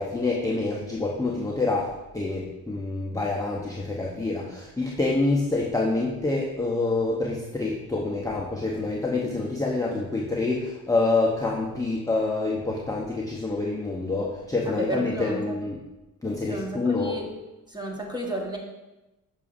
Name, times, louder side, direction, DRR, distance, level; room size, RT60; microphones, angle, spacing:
voice 1, 0.0-15.8 16.2-17.1, left 3 dB, 10° left, -3 dB, 0.6 m, -27 dB
voice 2, 14.7-15.6 16.5-17.3 17.7-18.6, right 1 dB, 10° right, 0 dB, 1.2 m, -32 dB
6.7 x 5.9 x 2.5 m, 1.0 s
cardioid pair, 100°, 34 cm